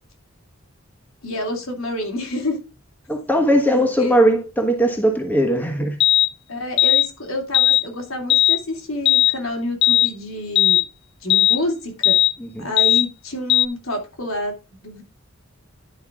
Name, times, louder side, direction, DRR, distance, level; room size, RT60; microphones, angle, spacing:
voice 1, 1.2-2.6 3.7-4.2 6.5-10.8 11.2-12.2 12.6-14.5 14.8-15.0, left 1 dB, 85° left, 2.9 m, -28 dB
voice 2, 3.1-6.0 12.4-12.7, equal, 10° left, 1.3 m, -19 dB
sound 1, 6.0-6.3 6.8-7.1 7.5-7.8 8.3-8.6 9.1-9.3 9.8-10.1 10.6-10.8 11.3-11.6 12.0-12.3 12.8-13.1 13.5-13.7, left 13 dB, 55° left, 0.3 m, -16 dB
11.0 x 5.4 x 3.7 m
head